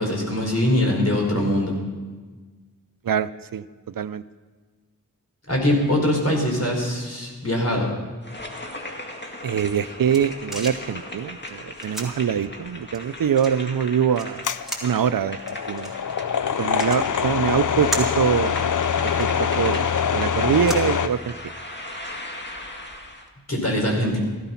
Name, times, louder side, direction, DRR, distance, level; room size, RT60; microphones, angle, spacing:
voice 1, 0.0-1.7 5.5-7.9 23.5-24.2, left 1 dB, 50° left, 0 dB, 4.5 m, -22 dB
voice 2, 3.0-3.6 4.0-4.2 9.4-14.5 14.8-15.4 15.7-15.9 16.6-18.6 19.0-21.3, right 8 dB, 85° right, 14 dB, 0.5 m, -24 dB
sound 1, 8.2-23.3, left 1 dB, 35° left, 2.1 m, -38 dB
sound 2, 9.6-21.6, right 1 dB, ahead, 3.6 m, -39 dB
sound 3, 14.4-21.1, left 7 dB, 65° left, 0.6 m, -24 dB
14.5 x 13.0 x 5.8 m, 1.4 s
wide cardioid pair, 45°, 33 cm